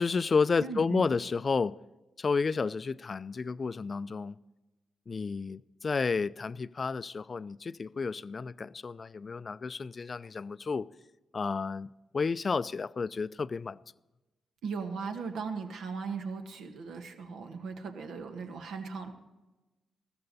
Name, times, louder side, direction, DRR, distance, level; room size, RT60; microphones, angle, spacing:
voice 1, 0.0-1.8 2.2-4.4 5.1-10.9 11.3-13.8, left 4 dB, 45° left, 0.4 m, -31 dB
voice 2, 0.6-1.1 14.6-19.1, right 5 dB, 75° right, 1.5 m, -38 dB
14.5 x 14.0 x 4.2 m
supercardioid pair, 45°, 0 cm